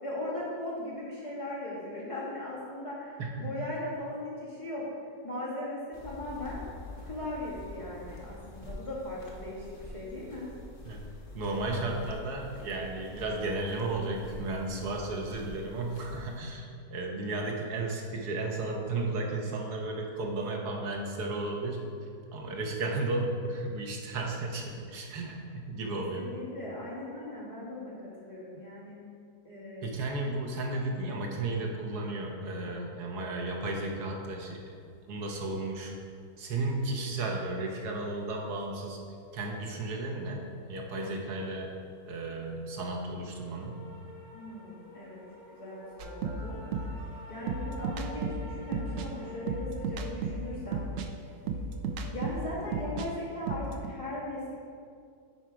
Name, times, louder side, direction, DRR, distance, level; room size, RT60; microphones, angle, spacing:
voice 1, 0.0-4.9 5.2-6.6 7.0-10.5 25.9-27.9 28.2-29.0 29.4-29.9 44.3-45.2 45.5-46.6 47.3-50.8 52.1-54.5, left 1 dB, 20° left, -8 dB, 2.0 m, -38 dB
sound 1, 5.9-16.4, left 2 dB, 35° left, 1.2 m, -46 dB
voice 2, 10.8-21.8 22.3-26.3 29.8-34.6 35.1-35.9 36.4-39.0 39.3-41.7 42.0-43.8, right 2 dB, 85° right, 0 dB, 1.5 m, -34 dB
sound 2, 34.3-52.9, left 1 dB, 60° left, 2.2 m, -51 dB
sound 3, 46.0-53.1 53.4-53.9, right 4 dB, 65° right, 0.9 m, -34 dB
10.0 x 4.5 x 4.6 m, 2.3 s
omnidirectional pair, 1.7 m